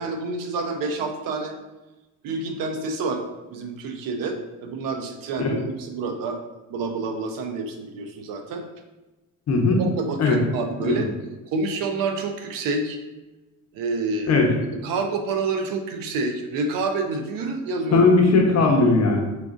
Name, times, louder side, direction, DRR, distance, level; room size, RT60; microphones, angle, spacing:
voice 1, 0.0-1.5 2.2-3.2 3.5-6.4 6.7-8.6 9.8-11.1 11.5-13.0 13.7-14.4 14.8-18.1, right 3 dB, 75° right, 5 dB, 0.6 m, -28 dB
voice 2, 9.5-9.8 10.2-10.4 10.8-11.1 14.3-14.5 17.9-19.2, left 3 dB, 50° left, 1 dB, 0.8 m, -18 dB
4.6 x 2.4 x 2.5 m, 1.1 s
cardioid pair, 100°, 34 cm